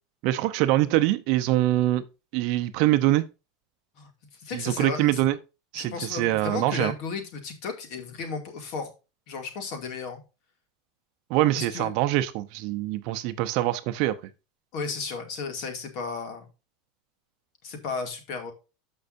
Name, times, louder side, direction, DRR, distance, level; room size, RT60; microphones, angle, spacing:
voice 1, 0.2-2.0 2.3-3.2 4.5-5.4 5.7-6.9 11.3-14.1, right 15 dB, 50° right, 0.7 m, -24 dB
voice 2, 4.4-5.2 5.7-8.9 9.3-10.2 11.5-11.9 14.7-16.5 17.6-18.5, left 4 dB, 45° left, 2.3 m, -34 dB
13.0 x 5.5 x 2.6 m
supercardioid pair, 165°, 0 cm